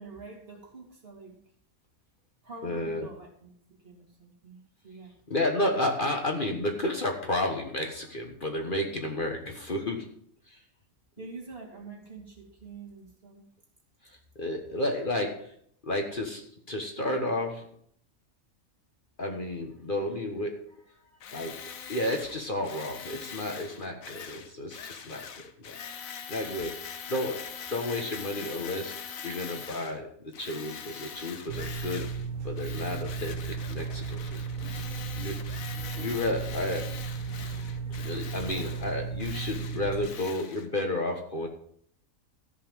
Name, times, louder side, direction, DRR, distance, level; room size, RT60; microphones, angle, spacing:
voice 1, 0.0-1.4 2.4-3.5 3.8-5.2 11.2-13.5, right 3 dB, 45° right, 0 dB, 2.7 m, -46 dB
voice 2, 2.6-3.1 5.3-10.1 10.5-10.6 14.0-15.5 15.8-17.7 19.2-20.7 21.3-21.6 21.9-25.8 26.3-28.9 29.2-30.1 30.4-34.4 35.2-35.6 35.9-37.0 37.9-41.5, left 1 dB, 40° left, 3 dB, 1.4 m, -32 dB
Tools, 21.2-30.0 30.3-32.3 32.6-40.7, left 7 dB, 75° left, 1.4 m, -43 dB
sound 1, 31.5-40.1, right 5 dB, 90° right, 2.0 m, -35 dB
14.0 x 5.7 x 7.2 m, 0.62 s
omnidirectional pair, 1.5 m